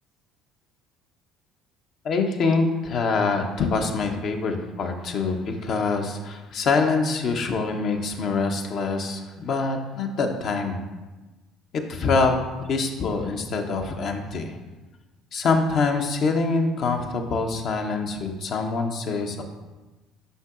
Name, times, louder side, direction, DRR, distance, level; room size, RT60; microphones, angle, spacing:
voice 1, 2.0-10.8 11.7-12.4 12.7-14.6 15.3-19.4, left 4 dB, 55° left, 4 dB, 0.8 m, -25 dB
8.0 x 5.9 x 2.5 m, 1.2 s
hypercardioid pair, 55°, 0 cm